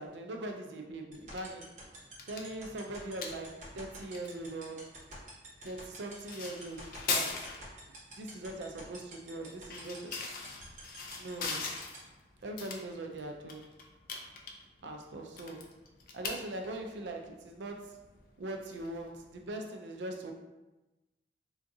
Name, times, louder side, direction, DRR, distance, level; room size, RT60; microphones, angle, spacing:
voice 1, 0.0-1.7 2.3-4.9 5.6-7.5 8.2-10.2 11.2-11.7 12.4-13.7 14.8-15.8 16.1-18.0 18.4-20.3, right 2 dB, 85° right, 3 dB, 0.4 m, -41 dB
sound 1, 1.1-19.5, left 4 dB, 50° left, 0.4 m, -43 dB
sound 2, 1.1-12.0, right 3 dB, 40° right, 0.9 m, -48 dB
3.8 x 2.4 x 2.6 m, 1.1 s
head